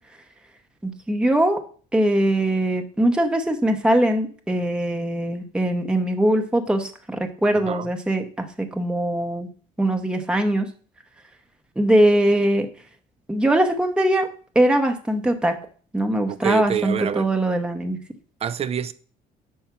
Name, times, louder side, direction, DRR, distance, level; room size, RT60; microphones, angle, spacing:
voice 1, 0.8-1.6 1.9-9.5 9.8-10.7 11.8-12.7 13.3-14.3 14.5-15.6 15.9-18.0, right 1 dB, 5° right, 0.8 m, -21 dB
voice 2, 16.3-17.3 18.4-18.9, right 9 dB, 35° right, 0.5 m, -26 dB
5.7 x 4.6 x 5.9 m
cardioid pair, 110°, 17 cm